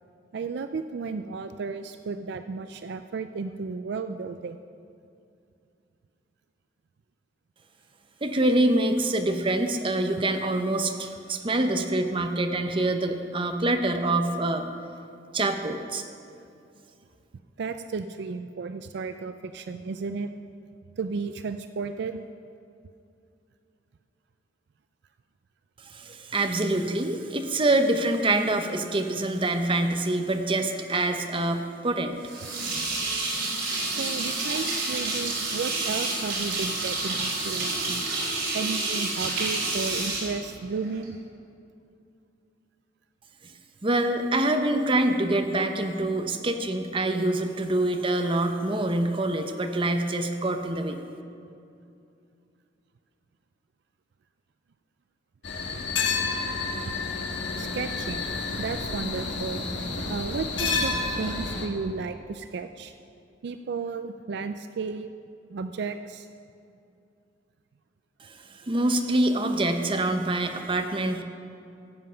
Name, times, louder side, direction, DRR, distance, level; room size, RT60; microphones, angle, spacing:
voice 1, 0.3-4.6 17.6-20.3 21.0-22.2 33.9-38.0 38.5-41.2 57.6-59.7 60.1-62.9 63.4-65.1 65.5-66.3, right 4 dB, 60° right, 9 dB, 0.4 m, -33 dB
voice 2, 8.2-14.6 15.3-16.0 25.9-32.2 43.8-51.0 68.7-71.2, right 2 dB, 30° right, 6 dB, 0.8 m, -25 dB
sound 1, 32.2-41.0, right 3 dB, 85° right, 3.3 m, -29 dB
sound 2, 55.4-61.7, left 4 dB, 75° left, 1.4 m, -30 dB
15.5 x 7.7 x 5.6 m, 2.6 s
head